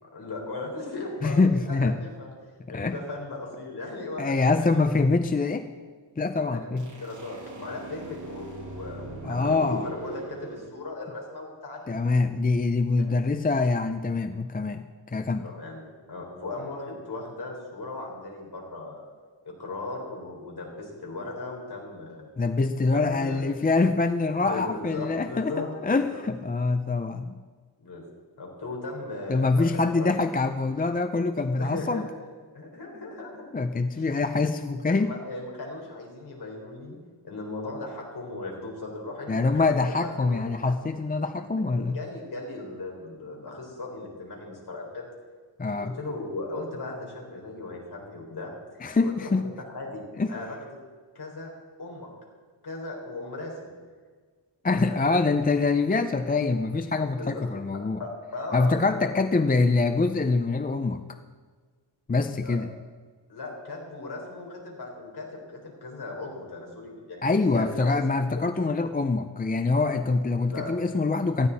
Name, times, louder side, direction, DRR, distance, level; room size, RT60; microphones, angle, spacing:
voice 1, 0.0-1.4 1.6-2.3 2.7-4.8 6.5-11.9 12.9-13.1 15.4-15.8 16.1-19.1 19.4-22.3 22.9-23.4 24.4-26.2 27.8-28.0 28.4-30.2 31.6-32.0 32.5-33.5 34.0-34.1 34.8-36.9 37.2-40.7 41.5-41.6 41.9-45.1 45.8-48.5 49.0-50.0 50.3-50.6 51.1-51.5 51.8-52.1 52.6-53.7 54.7-55.2 57.1-57.4 57.7-59.1 62.4-62.6 63.3-68.0 70.5-70.7, left 2 dB, 55° left, -1 dB, 4.3 m, -37 dB
voice 2, 1.2-2.0 2.7-3.0 4.2-5.7 6.2-6.9 9.2-9.9 11.9-15.5 22.4-25.5 25.8-27.4 29.3-32.1 33.5-35.1 39.3-42.0 45.6-45.9 48.8-49.5 50.2-50.3 54.6-58.0 58.5-61.2 62.1-62.7 67.2-71.5, left 3 dB, 20° left, 8 dB, 0.5 m, -25 dB
sound 1, 6.8-10.7, right 2 dB, 40° right, 2.5 m, -41 dB
19.0 x 14.5 x 4.2 m, 1.5 s
wide cardioid pair, 175°, 45 cm